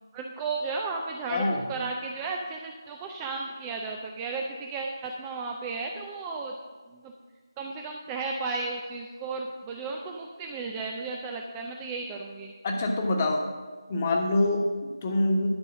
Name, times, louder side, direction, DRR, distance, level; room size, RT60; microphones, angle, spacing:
voice 1, 0.1-6.5 6.9-7.1 7.6-12.5, right 4 dB, 10° right, 1 dB, 0.4 m, -34 dB
voice 2, 1.3-1.6 12.6-13.4 13.9-15.5, left 2 dB, 25° left, 2 dB, 1.3 m, -25 dB
11.5 x 5.4 x 6.2 m, 1.4 s
figure-of-eight pair, 165°, 3 cm